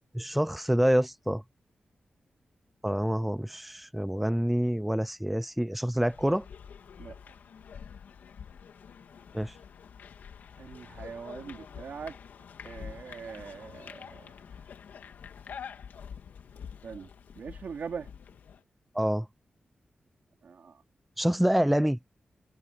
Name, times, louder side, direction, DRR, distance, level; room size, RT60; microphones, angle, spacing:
voice 1, 0.1-1.4 2.8-6.5 9.3-9.6 18.9-19.3 21.2-22.0, equal, 5° right, 0.5 m, -27 dB
sound 1, 6.1-18.6, left 7 dB, 90° left, 2.0 m, -47 dB
voice 2, 10.6-12.2 12.6-14.7 16.8-17.1 17.3-18.1 20.4-20.8, right 6 dB, 70° right, 3.3 m, -42 dB
wide cardioid pair, 95°, 3 cm